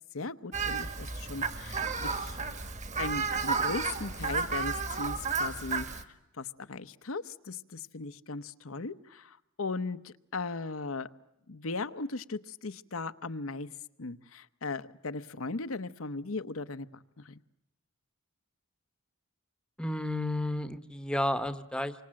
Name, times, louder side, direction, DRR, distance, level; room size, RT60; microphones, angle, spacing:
voice 1, 0.1-2.4 3.0-5.9 6.4-11.1 11.5-13.7 14.0-17.4, left 3 dB, 70° left, 11 dB, 1.0 m, -38 dB
Fowl, 0.5-6.0, right 4 dB, 35° right, 1.8 m, -32 dB
voice 2, 19.8-21.9, left 1 dB, 5° left, 11 dB, 1.0 m, -31 dB
28.5 x 25.0 x 7.6 m, 0.89 s
head